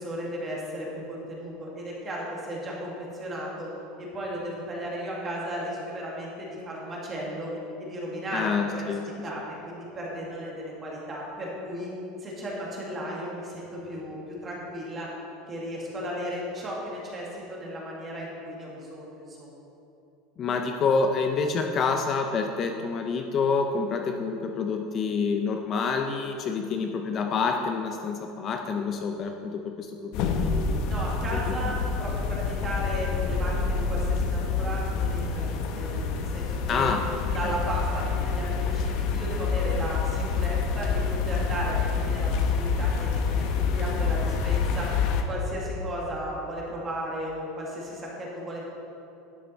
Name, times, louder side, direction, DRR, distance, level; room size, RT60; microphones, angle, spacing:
voice 1, 0.0-3.7 4.0-8.8 9.2-11.9 12.2-15.1 15.5-19.5 30.9-36.9 37.3-44.9 45.3-48.7, equal, 20° right, -4 dB, 1.6 m, -35 dB
voice 2, 8.3-9.3 20.4-30.8 31.5-31.6 36.7-37.0 37.4-37.6, left 5 dB, 25° left, 4 dB, 0.5 m, -28 dB
sound 1, 30.1-45.2, left 5 dB, 50° left, 0.8 m, -27 dB
11.5 x 8.6 x 4.0 m, 2.9 s
cardioid pair, 175°, 0 cm